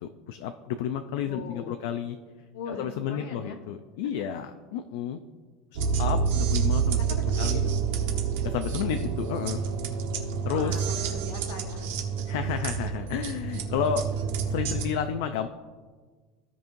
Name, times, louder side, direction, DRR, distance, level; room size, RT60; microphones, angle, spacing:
voice 1, 0.0-2.2 2.7-5.2 6.0-7.7 8.4-9.6 10.5-10.8 12.3-14.1 14.5-15.5, left 8 dB, 65° left, 8 dB, 0.4 m, -31 dB
voice 2, 1.2-1.9 2.5-3.6 7.1-7.8 10.5-11.9, left 4 dB, 90° left, 3 dB, 1.3 m, -40 dB
sound 1, 5.8-14.9, right 6 dB, 75° right, 1.2 m, -28 dB
15.5 x 5.3 x 2.6 m, 1.4 s
supercardioid pair, 180°, 0 cm